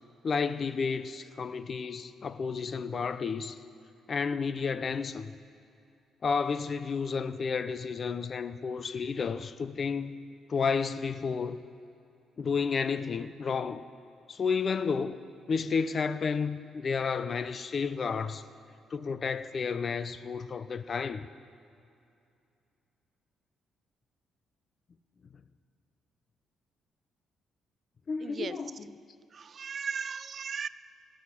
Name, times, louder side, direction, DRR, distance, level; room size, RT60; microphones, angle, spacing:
voice 1, 0.2-3.6 4.1-5.3 6.2-10.2 10.5-11.6 12.4-13.9 14.3-15.2 15.5-18.4 18.9-21.3 28.1-28.9, left 5 dB, 45° left, 0.6 m, -31 dB
voice 2, 28.2-28.6 29.3-30.7, right 6 dB, 45° right, 0.4 m, -36 dB
16.5 x 6.5 x 9.9 m
cardioid pair, 90°, 0 cm